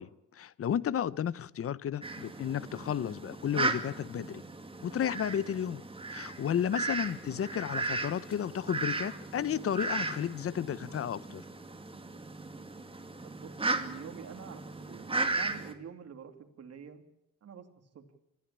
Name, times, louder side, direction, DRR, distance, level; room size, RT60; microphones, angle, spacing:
voice 1, 0.0-4.4 4.8-5.8 6.1-11.4, left 9 dB, 50° left, 0.8 m, -33 dB
Fowl, 2.0-15.7, right 3 dB, 20° right, 2.4 m, -36 dB
voice 2, 13.2-17.0 17.4-17.6 17.9-18.0, right 7 dB, 55° right, 2.9 m, -47 dB
25.0 x 15.0 x 8.7 m
cardioid pair, 90°, 30 cm